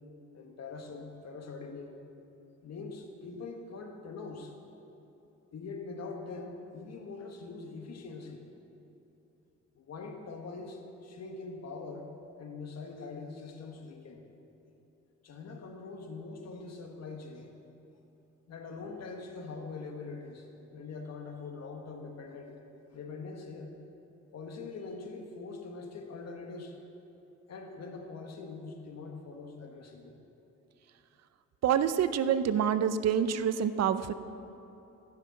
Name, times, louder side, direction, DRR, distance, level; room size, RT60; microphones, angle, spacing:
voice 1, 0.3-2.0 2.6-4.5 5.5-8.4 9.7-12.1 12.4-14.2 15.2-17.5 18.5-22.5 22.9-23.7 24.3-26.8 27.5-30.2, left 4 dB, 60° left, 3 dB, 1.6 m, -43 dB
voice 2, 31.6-34.1, right 8 dB, 60° right, 12 dB, 0.6 m, -27 dB
14.0 x 6.6 x 6.4 m, 3.0 s
cardioid pair, 90°, 30 cm